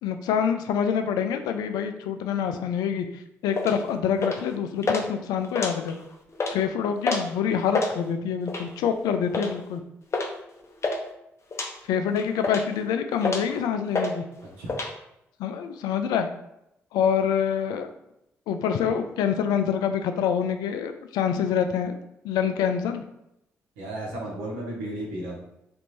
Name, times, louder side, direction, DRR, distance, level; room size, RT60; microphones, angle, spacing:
voice 1, 0.0-5.9 6.5-9.8 11.9-14.2 15.4-16.3 16.9-17.9 18.5-21.9 22.2-23.0, left 7 dB, 75° left, 7 dB, 0.3 m, -26 dB
sound 1, 3.5-3.8 4.2-4.5 4.8-5.0 5.4-6.0 6.3-6.6 7.0-7.3 7.6-7.9 8.5-8.8 9.3-9.5 10.1-10.3 10.6-11.0 11.5-11.7 12.2-12.8 13.2-13.5 13.9-14.1 14.4-14.9, left 3 dB, 45° left, 0.6 m, -27 dB
voice 2, 23.8-25.4, right 1 dB, 90° right, -3 dB, 0.9 m, -34 dB
3.3 x 2.6 x 3.1 m, 0.82 s
hypercardioid pair, 45°, 7 cm